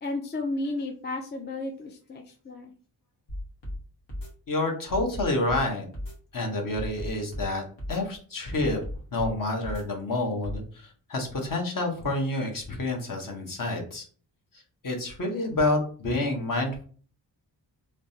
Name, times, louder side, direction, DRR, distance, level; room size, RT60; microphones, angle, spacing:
voice 1, 0.0-2.7, left 2 dB, 25° left, 2 dB, 0.4 m, -33 dB
sound 1, 3.3-3.8 4.1-4.3 4.9-5.6 5.9-6.1 6.7-7.5 7.8-8.0 8.6-9.3 9.6-9.8 10.4-10.6, left 1 dB, 70° left, 1.3 m, -35 dB
voice 2, 4.5-5.9 6.3-7.6 7.9-8.8 9.1-14.0 14.8-16.8, left 2 dB, 45° left, 2 dB, 1.0 m, -28 dB
3.2 x 2.1 x 2.7 m, 0.42 s
cardioid pair, 65°, 44 cm